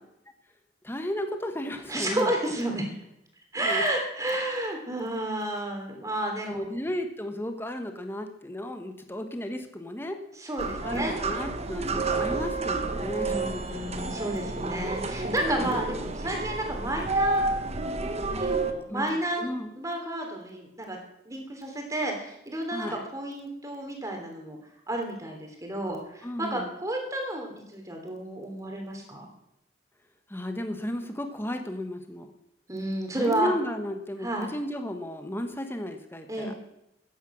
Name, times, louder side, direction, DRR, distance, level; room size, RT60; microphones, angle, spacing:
voice 1, 0.8-2.3 3.6-3.8 6.4-10.2 10.8-13.8 14.6-15.0 15.5-15.7 18.9-19.7 22.7-23.0 26.2-26.8 30.3-32.3 33.2-36.5, left 1 dB, 15° left, 6 dB, 1.3 m, -34 dB
voice 2, 1.9-2.9 3.5-6.6 10.4-11.2 13.2-17.4 18.3-21.0 21.2-24.6 24.9-29.3 32.7-33.5 34.2-34.5 36.3-36.6, right 1 dB, 20° right, 2 dB, 3.3 m, -31 dB
sound 1, 10.6-18.7, right 3 dB, 35° right, 1.2 m, -30 dB
14.0 x 10.0 x 6.3 m, 0.83 s
head